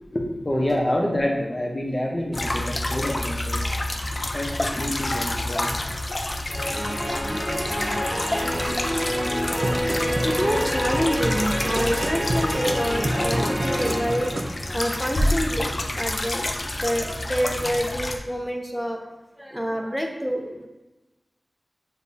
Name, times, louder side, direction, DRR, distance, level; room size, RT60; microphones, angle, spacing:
voice 1, 0.1-3.6 4.3-5.7, left 1 dB, 30° left, -1 dB, 0.9 m, -27 dB
sound 1, 2.3-18.2, left 1 dB, 50° left, 0.4 m, -28 dB
sound 2, 6.5-15.1, equal, 30° right, 1.2 m, -28 dB
sound 3, 9.2-14.6 15.2-15.3, right 1 dB, 60° right, 0.4 m, -30 dB
voice 2, 9.9-14.3 14.7-20.7, equal, 5° right, 2 dB, 0.6 m, -27 dB
6.7 x 2.4 x 2.7 m, 1.1 s
wide cardioid pair, 70°, 0 cm